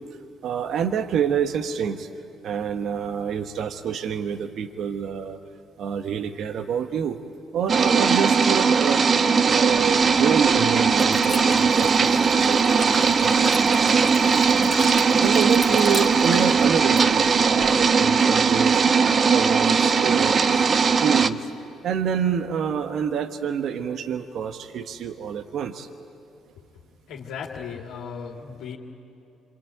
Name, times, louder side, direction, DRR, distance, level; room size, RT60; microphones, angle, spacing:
voice 1, 0.4-2.1 2.4-5.4 5.8-7.2 7.5-9.0 9.4-13.9 14.5-14.8 15.1-18.8 19.2-20.7 21.0-21.5 21.8-25.9, right 7 dB, 65° right, 9 dB, 1.3 m, -27 dB
sound 1, 7.7-21.3, right 5 dB, 45° right, 1.0 m, -19 dB
Liquid, 9.5-18.1, left 3 dB, 20° left, 2.5 m, -39 dB
voice 2, 27.1-28.8, left 6 dB, 75° left, -3 dB, 2.4 m, -36 dB
26.5 x 24.0 x 9.2 m, 2.8 s
hypercardioid pair, 60°, 0 cm